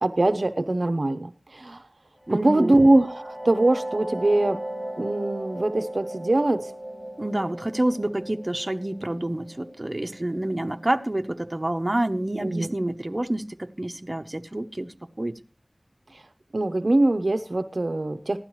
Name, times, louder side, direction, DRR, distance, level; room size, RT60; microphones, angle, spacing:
voice 1, 0.0-1.8 2.3-4.6 5.0-6.7 12.4-12.7 16.1-16.2 16.5-18.4, right 2 dB, 70° right, 0.6 m, -22 dB
sound 1, 2.2-11.7, right 1 dB, 20° left, 5.1 m, -37 dB
voice 2, 2.3-2.8 7.2-15.4, right 1 dB, 40° right, 0.8 m, -28 dB
15.5 x 12.0 x 3.1 m
wide cardioid pair, 40°, 0 cm